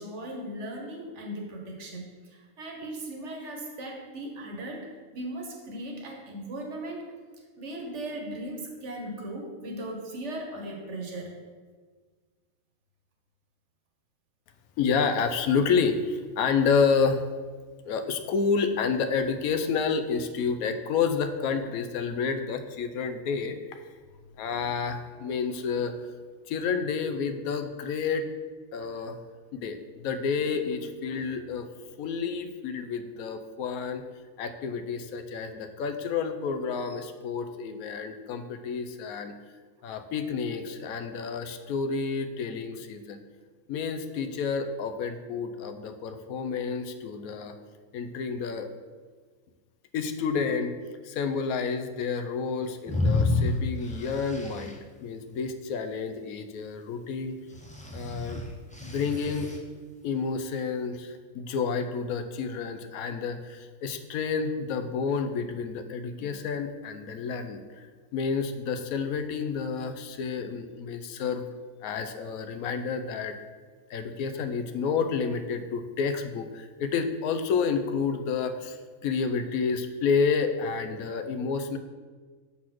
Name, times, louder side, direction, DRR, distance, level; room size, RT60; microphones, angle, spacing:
voice 1, 0.0-7.1 7.6-11.4, right 1 dB, 60° right, 2 dB, 1.3 m, -38 dB
voice 2, 14.8-17.2 17.9-23.8 24.4-25.9 26.5-28.2 28.7-29.2 29.5-31.7 32.0-34.0 34.4-39.3 39.8-43.2 43.7-47.5 47.9-48.7 49.9-50.7 51.0-57.4 57.9-58.4 58.8-59.5 60.0-67.9 68.1-71.5 71.8-73.4 73.9-78.8 79.0-81.8, left 5 dB, 85° left, 8 dB, 1.1 m, -29 dB
sound 1, 52.9-54.7 57.5-59.6, left 3 dB, 10° left, 0.5 m, -29 dB
6.3 x 4.2 x 6.0 m, 1.5 s
omnidirectional pair, 1.5 m